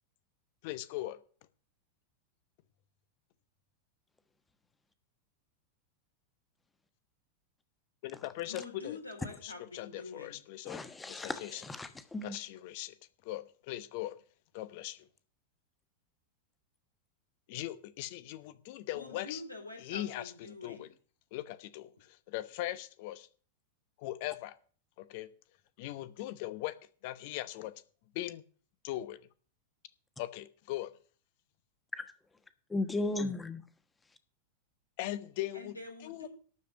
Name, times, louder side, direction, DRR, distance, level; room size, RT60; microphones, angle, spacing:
voice 1, 0.6-1.2 8.0-9.0 9.4-11.7 12.2-12.9 13.2-14.2 14.5-15.1 17.5-19.4 19.8-20.9 21.3-23.3 24.0-24.6 25.0-25.3 25.8-26.7 27.0-27.7 28.1-28.4 28.8-29.3 30.2-30.9 35.0-35.8 36.0-36.3, left 15 dB, 50° left, 0.9 m, -40 dB
voice 2, 8.5-10.4 18.9-20.9 35.5-36.3, left 3 dB, 85° left, 3.4 m, -46 dB
voice 3, 10.7-12.4 32.7-33.6, left 2 dB, 10° left, 1.2 m, -35 dB
12.5 x 5.0 x 8.2 m
figure-of-eight pair, 90°, 0 cm